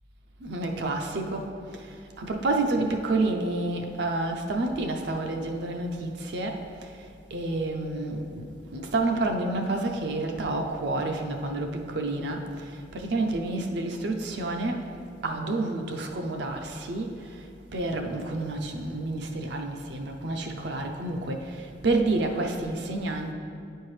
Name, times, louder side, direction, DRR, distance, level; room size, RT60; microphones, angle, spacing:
voice 1, 0.4-1.5 2.2-6.6 7.3-8.4 8.7-12.4 12.9-14.8 15.2-17.1 17.7-21.6 21.8-23.3, right 2 dB, 65° right, 3 dB, 0.5 m, -29 dB
9.1 x 4.5 x 3.2 m, 2.4 s
head